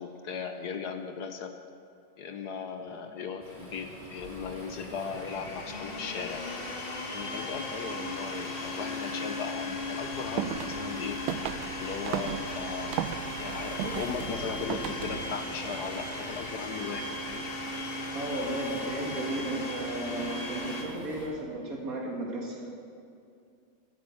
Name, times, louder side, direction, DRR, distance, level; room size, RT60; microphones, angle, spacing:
voice 1, 0.0-1.5 2.2-6.4 7.1-11.2 11.7-13.0 13.4-17.5, left 6 dB, 60° left, 7 dB, 1.2 m, -37 dB
Waves surf, 3.4-21.3, equal, 20° right, 4.6 m, -46 dB
Domestic sounds home sounds, 5.0-20.8, left 2 dB, 30° left, 1.4 m, -37 dB
sound 1, 10.1-15.3, right 10 dB, 80° right, 1.4 m, -36 dB
voice 2, 18.1-22.6, right 1 dB, 45° right, -1 dB, 2.8 m, -34 dB
15.0 x 9.0 x 8.4 m, 2.5 s
omnidirectional pair, 2.2 m